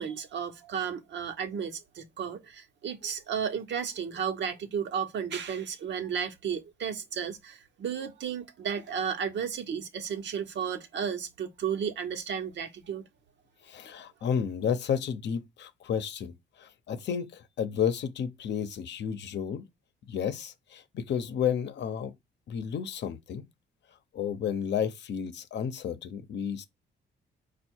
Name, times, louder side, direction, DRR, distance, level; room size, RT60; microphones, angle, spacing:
voice 1, 0.0-13.0, right 7 dB, 65° right, 1.0 m, -33 dB
voice 2, 13.6-19.6 20.1-22.1 22.5-23.4 24.1-26.6, left 8 dB, 60° left, 0.8 m, -32 dB
4.5 x 2.4 x 4.4 m
cardioid pair, 90°, 20 cm